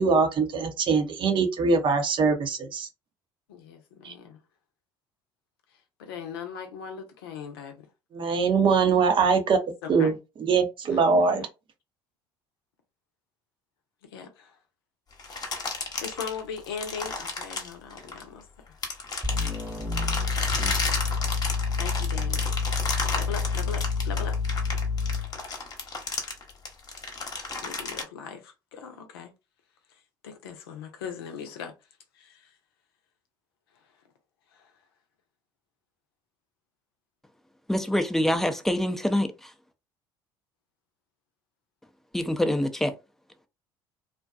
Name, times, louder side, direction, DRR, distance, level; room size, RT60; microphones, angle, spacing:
voice 1, 0.0-2.9 4.0-4.1 8.1-9.6 9.9-11.4, right 5 dB, 45° right, 0.7 m, -22 dB
voice 2, 3.5-4.4 6.0-7.8 9.8-10.1 10.9-11.3 14.1-14.6 15.6-18.8 21.8-22.4 22.9-24.4 27.6-29.3 30.2-31.7 32.1-32.5 34.5-34.7, left 7 dB, 85° left, 0.6 m, -39 dB
sound 1, 15.2-18.4 18.8-28.0, left 3 dB, 30° left, 0.9 m, -33 dB
sound 2, 19.2-25.4, left 4 dB, 15° right, 0.9 m, -28 dB
voice 3, 37.7-39.5 42.1-42.9, left 1 dB, 5° left, 0.5 m, -25 dB
2.5 x 2.2 x 2.4 m
hypercardioid pair, 65°, 12 cm